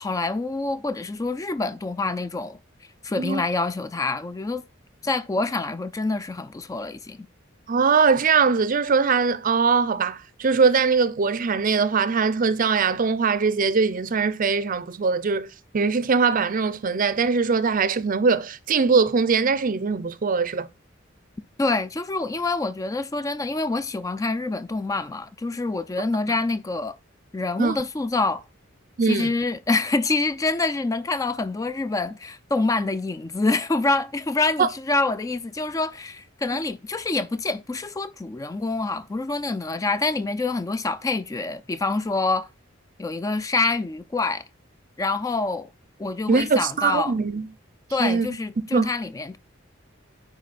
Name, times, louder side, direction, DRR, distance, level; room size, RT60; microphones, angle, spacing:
voice 1, 0.0-2.6 3.0-4.6 5.0-7.3 21.6-27.0 27.3-28.4 29.0-42.5 43.0-44.4 45.0-45.7 46.0-47.1 47.9-49.4, left 3 dB, 15° left, 0.3 m, -26 dB
voice 2, 7.7-20.7 26.3-26.4 27.6-27.8 29.0-29.3 34.6-34.7 46.3-47.5 48.0-48.3 48.7-48.9, right 5 dB, 40° right, 0.5 m, -21 dB
9.6 x 4.1 x 4.1 m
head